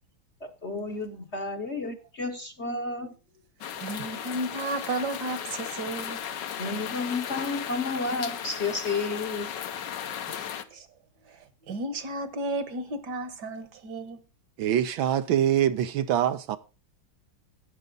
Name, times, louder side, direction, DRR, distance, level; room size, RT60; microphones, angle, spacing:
voice 1, 0.4-3.1 6.5-9.5 10.0-10.1, left 3 dB, 40° left, 1.2 m, -31 dB
sound 1, 3.6-10.6, left 9 dB, 65° left, 1.5 m, -36 dB
voice 2, 3.8-6.5 10.3-10.9 11.3-11.4 11.7-14.2, right 2 dB, 60° right, 1.8 m, -33 dB
voice 3, 14.6-16.6, right 10 dB, 80° right, 1.6 m, -24 dB
12.5 x 9.3 x 3.9 m
omnidirectional pair, 2.2 m